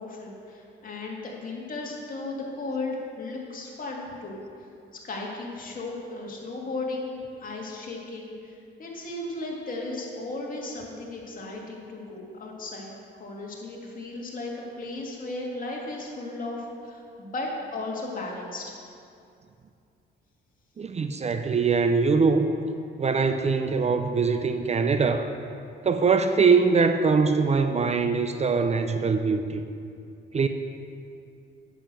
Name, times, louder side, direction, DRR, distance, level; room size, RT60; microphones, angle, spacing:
voice 1, 0.0-4.4 5.0-7.1 7.4-18.7, left 2 dB, 45° left, -2 dB, 2.3 m, -35 dB
voice 2, 20.8-22.5 23.0-25.3 25.8-29.6 30.3-30.5, right 5 dB, 35° right, 8 dB, 0.6 m, -22 dB
9.2 x 7.0 x 6.8 m, 2.5 s
cardioid pair, 90°, 20 cm